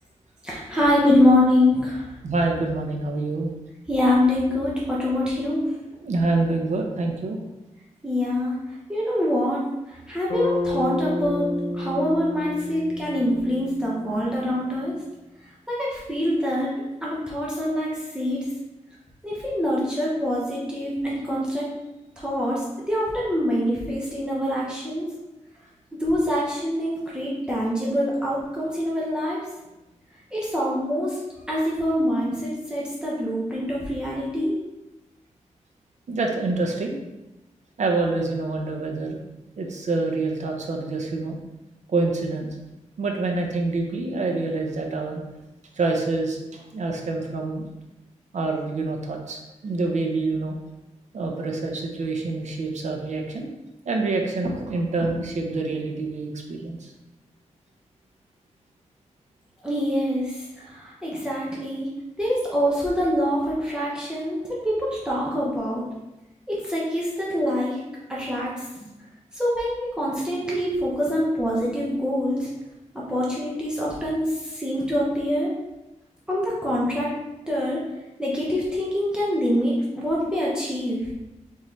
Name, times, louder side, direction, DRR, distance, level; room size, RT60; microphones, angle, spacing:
voice 1, 0.4-2.0 3.9-5.7 8.0-8.6 8.9-9.6 10.1-11.5 11.7-14.9 15.7-16.8 17.0-18.4 19.2-21.7 22.2-22.6 22.9-25.1 26.0-29.4 30.3-31.2 31.5-34.6 59.6-60.4 60.7-61.9 62.2-65.8 66.5-67.8 68.1-68.5 69.3-72.5 72.9-75.5 76.3-77.1 77.5-77.8 78.2-81.0, left 1 dB, 5° right, -7 dB, 0.9 m, -24 dB
voice 2, 2.2-3.5 6.0-7.4 36.1-37.0 37.8-39.2 39.6-41.4 41.9-42.5 43.0-45.2 45.8-47.7 48.3-50.6 51.1-53.5 53.9-56.9, right 3 dB, 70° right, 2 dB, 0.7 m, -26 dB
Bass guitar, 10.3-14.7, left 2 dB, 55° left, 0.8 m, -30 dB
4.1 x 3.7 x 3.1 m, 1.0 s
wide cardioid pair, 145°, 12 cm